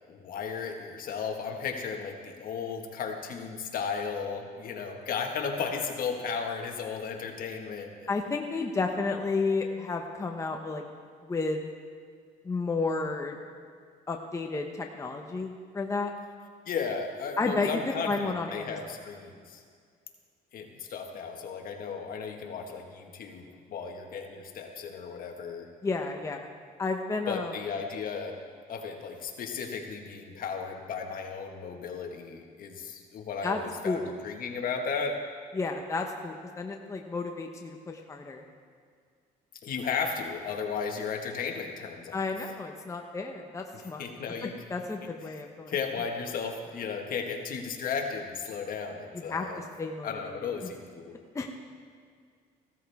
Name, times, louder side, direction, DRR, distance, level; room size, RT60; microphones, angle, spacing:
voice 1, 0.1-7.9 16.6-19.6 20.5-25.7 27.3-28.4 28.7-35.2 39.6-42.3 43.7-44.5 45.2-49.6 50.0-51.1, left 5 dB, 55° left, 3 dB, 1.6 m, -35 dB
voice 2, 8.1-10.8 11.2-11.6 12.4-13.4 14.1-16.1 17.4-18.8 25.8-26.5 26.8-27.5 33.4-33.6 33.8-34.1 35.5-38.4 42.1-44.0 44.4-45.7 49.3-50.3 51.3-51.5, left 3 dB, 20° left, 3 dB, 0.9 m, -32 dB
16.0 x 13.0 x 3.5 m, 2.1 s
cardioid pair, 110°, 17 cm